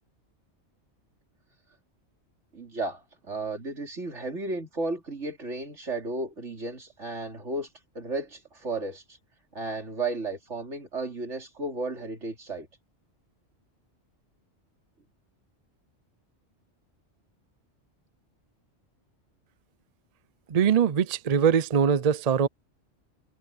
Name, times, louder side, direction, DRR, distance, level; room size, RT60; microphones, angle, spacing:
voice 1, 2.5-7.7 8.0-9.0 9.5-12.7, right 2 dB, 85° right, 3.7 m, -33 dB
voice 2, 20.5-22.5, right 7 dB, 45° right, 0.6 m, -22 dB
omnidirectional pair, 1.2 m